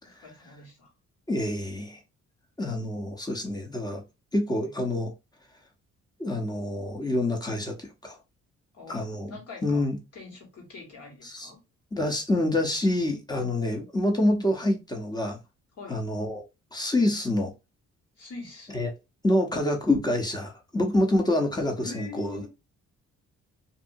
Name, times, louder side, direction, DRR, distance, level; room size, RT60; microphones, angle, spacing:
voice 1, 0.0-0.9 4.6-4.7 8.7-9.8 10.1-11.6 15.8-16.0 18.2-18.9 21.8-22.5, left 4 dB, 60° left, 1.6 m, -44 dB
voice 2, 1.3-2.0 2.6-4.0 4.3-5.1 6.2-8.2 8.9-9.4 9.6-10.0 11.2-11.5 11.9-15.4 15.9-16.4 16.7-17.5 18.7-18.9 19.2-22.5, left 1 dB, 15° left, 0.9 m, -27 dB
2.7 x 2.6 x 2.6 m
cardioid pair, 80°, 29 cm